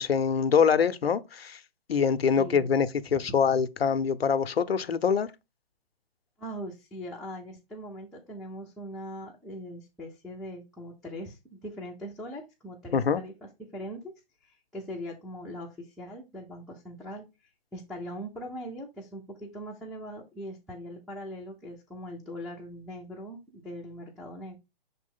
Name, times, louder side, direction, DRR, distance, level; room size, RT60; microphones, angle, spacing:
voice 1, 0.0-1.6 1.9-5.3 12.9-13.2, left 6 dB, 85° left, 0.7 m, -24 dB
voice 2, 2.4-2.7 3.1-3.4 6.4-13.3 13.6-14.1 14.4-17.3 17.7-24.6, equal, ahead, 0.6 m, -41 dB
6.1 x 4.1 x 3.7 m
hypercardioid pair, 140°, 29 cm